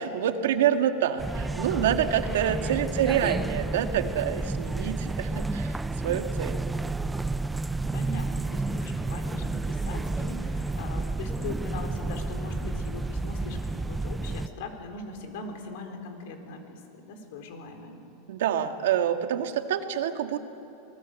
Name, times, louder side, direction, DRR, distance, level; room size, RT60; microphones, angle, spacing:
voice 1, 0.0-5.7 6.0-6.6 18.3-20.4, right 9 dB, 80° right, 7 dB, 1.6 m, -27 dB
sound 1, 1.2-14.5, right 2 dB, 5° right, 0.5 m, -31 dB
voice 2, 2.9-3.3 7.9-18.0, left 3 dB, 65° left, 5 dB, 4.0 m, -40 dB
26.5 x 19.5 x 8.3 m, 2.9 s
supercardioid pair, 150°, 0 cm